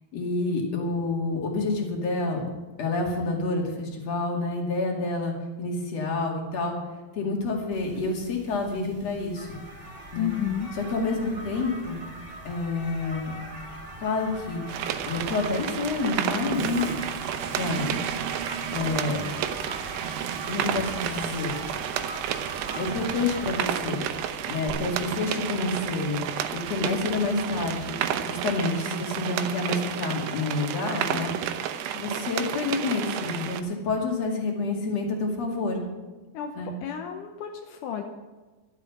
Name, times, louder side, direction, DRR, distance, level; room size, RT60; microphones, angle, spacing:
voice 1, 0.1-2.5 2.8-6.8 7.1-9.5 10.1-10.3 10.8-12.0 12.4-13.3 14.0-14.6 15.0-16.9 17.6-18.1 18.7-19.3 20.5-21.5 22.8-24.0 24.5-26.2 26.5-28.0 28.3-31.3 31.9-35.8 36.6-36.7, left 3 dB, 45° left, 1 dB, 3.0 m, -28 dB
sound 1, 7.7-24.7, right 1 dB, 20° right, 2.2 m, -42 dB
voice 2, 10.2-10.7 36.3-36.6 36.8-38.0, left 10 dB, 75° left, 4 dB, 1.9 m, -31 dB
sound 2, 14.7-33.6, right 10 dB, 85° right, 3.0 m, -31 dB
Toilet flush, 16.5-28.8, right 7 dB, 70° right, 2.5 m, -40 dB
13.0 x 12.0 x 5.9 m, 1.2 s
omnidirectional pair, 4.7 m